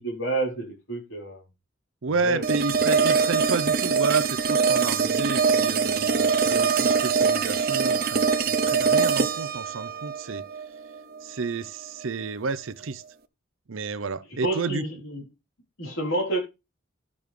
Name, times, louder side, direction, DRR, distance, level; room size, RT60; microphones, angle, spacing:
voice 1, 0.0-1.4 2.1-2.4 14.4-15.2 15.8-16.4, right 2 dB, 85° left, 3.9 m, -29 dB
voice 2, 2.0-10.4 11.2-13.0 13.7-14.8, right 4 dB, 90° right, 0.7 m, -30 dB
sound 1, 2.4-11.5, right 5 dB, 50° right, 0.7 m, -23 dB
12.0 x 7.0 x 3.3 m
head